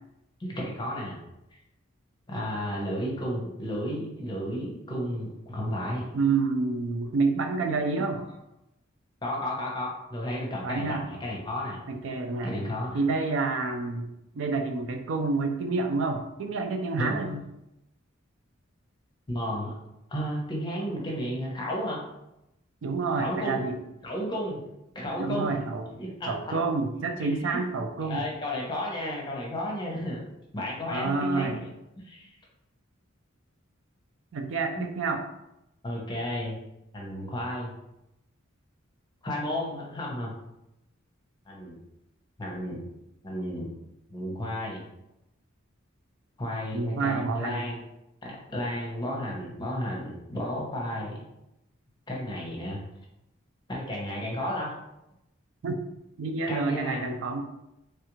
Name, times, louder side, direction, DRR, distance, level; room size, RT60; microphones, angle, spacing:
voice 1, 0.4-1.2 1.5-1.6 2.3-6.0 9.2-11.8 12.4-13.0 17.0-17.2 19.3-19.7 20.1-22.0 23.2-23.6 24.0-24.6 24.9-25.7 26.0-26.6 27.2-27.6 28.0-30.2 30.5-31.7 32.0-32.3 34.7-34.8 35.8-36.6 36.9-37.7 39.2-40.3 41.5-41.8 42.4-42.8 43.2-43.7 44.1-44.8 46.4-47.8 48.2-51.2 52.1-52.8 53.7-54.7 56.5-57.1, equal, 20° left, -3 dB, 0.7 m, -33 dB
voice 2, 6.1-8.2 10.6-11.1 11.9-12.5 12.9-14.1 14.3-17.4 22.8-23.8 25.2-25.8 26.3-28.3 30.9-31.6 34.3-35.2 46.7-47.6 55.6-55.8 56.2-57.4, right 3 dB, 65° right, 4 dB, 0.4 m, -28 dB
3.2 x 2.4 x 3.0 m, 0.87 s
head